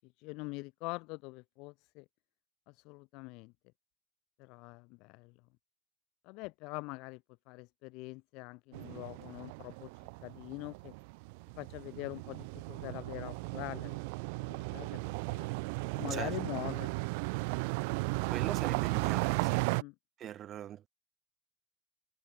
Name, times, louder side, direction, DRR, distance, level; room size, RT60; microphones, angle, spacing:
voice 1, 0.0-2.0 2.7-3.5 4.4-5.4 6.2-10.9 11.5-14.0 14.4-15.5 16.0-16.9 19.7-19.9, left 26 dB, 80° left, 5.0 m, -44 dB
sound 1, 8.7-19.8, right 30 dB, 90° right, 0.6 m, -35 dB
voice 2, 18.0-19.7 20.2-20.9, right 11 dB, 60° right, 2.0 m, -41 dB
supercardioid pair, 75°, 0 cm